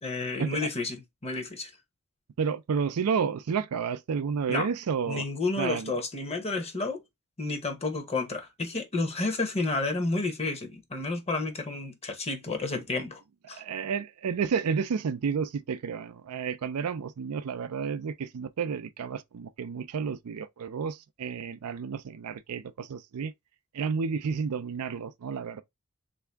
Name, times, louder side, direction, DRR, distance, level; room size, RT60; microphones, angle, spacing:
voice 1, 0.0-1.7 4.5-4.7 5.1-7.0 7.4-13.2 13.5-13.6, left 3 dB, 30° left, 0.8 m, -31 dB
voice 2, 2.4-5.2 5.6-5.9 13.5-23.3 23.7-25.6, right 6 dB, 75° right, 0.4 m, -31 dB
3.4 x 2.7 x 3.4 m
head